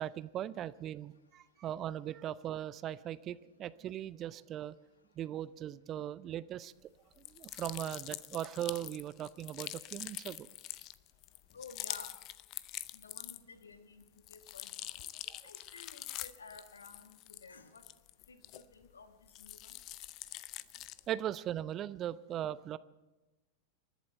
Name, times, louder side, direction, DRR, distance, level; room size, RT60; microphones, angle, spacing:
voice 1, 0.0-4.7 5.2-6.7 7.2-10.5 15.3-15.4 21.1-22.8, right 11 dB, 30° right, 17 dB, 0.5 m, -39 dB
sound 1, 7.2-13.6 14.0-18.9 19.3-21.1, left 15 dB, 40° left, 0.6 m, -45 dB
voice 2, 11.5-12.2 12.9-15.1 15.4-17.9 18.3-19.8, left 4 dB, 70° left, 9 dB, 1.5 m, -53 dB
27.5 x 11.5 x 4.4 m, 1.1 s
figure-of-eight pair, 90°, 0 cm